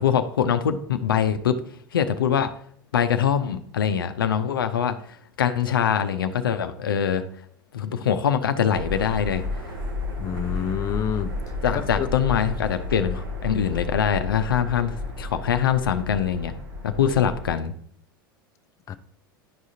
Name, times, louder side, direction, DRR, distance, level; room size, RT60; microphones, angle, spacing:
voice 1, 0.0-1.6 1.9-2.5 2.9-5.0 5.4-7.3 7.7-9.4 11.6-17.7, left 8 dB, 80° left, 9 dB, 0.5 m, -23 dB
sound 1, 8.7-17.5, left 2 dB, 80° right, 1.5 m, -32 dB
voice 2, 10.2-11.3 11.7-12.1 18.9-19.0, left 9 dB, 30° left, 10 dB, 0.4 m, -28 dB
10.5 x 4.9 x 2.7 m, 0.63 s
hypercardioid pair, 85°, 11 cm